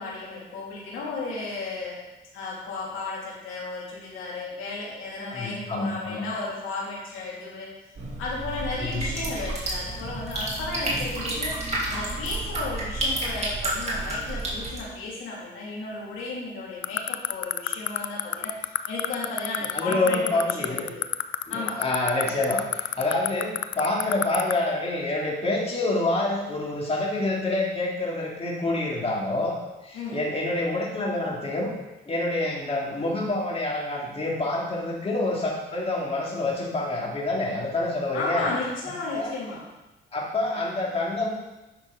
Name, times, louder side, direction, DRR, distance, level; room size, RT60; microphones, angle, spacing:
voice 1, 0.0-2.0 2.3-7.7 8.2-11.5 11.9-21.0 21.5-21.8 29.9-30.2 38.1-39.6 40.5-40.7, left 3 dB, 90° left, -4 dB, 2.6 m, -34 dB
voice 2, 5.3-6.2 8.8-9.1 19.7-20.8 21.5-29.6 29.8-31.7 32.1-38.5 39.1-39.3 40.1-41.3, left 2 dB, 30° left, -3 dB, 2.4 m, -27 dB
sound 1, 8.0-14.8, right 1 dB, 35° right, 2.7 m, -30 dB
sound 2, 16.8-24.5, left 14 dB, 70° left, 0.5 m, -24 dB
10.5 x 6.1 x 4.0 m, 1.0 s
cardioid pair, 90°, 20 cm